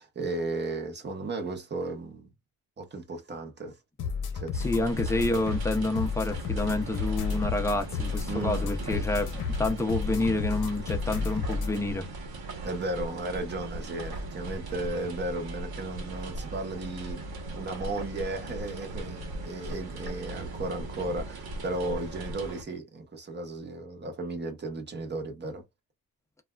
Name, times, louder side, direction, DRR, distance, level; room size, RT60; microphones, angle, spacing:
voice 1, 0.0-2.3 2.8-3.8 4.3-4.5 8.3-8.7 12.6-17.2 17.5-25.6, right 2 dB, 30° right, 0.9 m, -35 dB
sound 1, 4.0-11.8, left 5 dB, 55° left, 0.8 m, -32 dB
voice 2, 4.5-12.0, left 2 dB, 10° left, 0.5 m, -29 dB
sound 2, 4.5-22.6, right 2 dB, 75° right, 1.1 m, -38 dB
3.2 x 2.4 x 2.2 m
wide cardioid pair, 135°, 37 cm